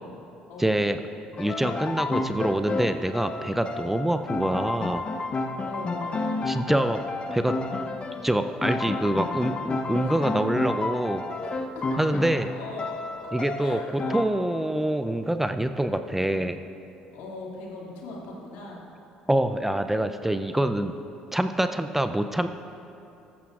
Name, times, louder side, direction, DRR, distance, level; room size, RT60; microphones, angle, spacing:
voice 1, 0.6-1.0 1.4-5.0 6.5-7.0 7.3-7.6 8.2-11.2 12.0-12.5 13.3-13.8 14.1-16.6 19.3-20.9 21.3-22.5, right 1 dB, 10° right, 8 dB, 0.5 m, -25 dB
sound 1, 1.4-14.3, left 3 dB, 35° left, 0.8 m, -31 dB
voice 2, 5.6-6.2 10.0-10.2 11.4-12.1 12.4-12.9 13.2-14.3 17.1-18.8, left 2 dB, 75° left, -3 dB, 2.3 m, -40 dB
14.5 x 12.5 x 2.4 m, 2.8 s
hypercardioid pair, 65°, 3 cm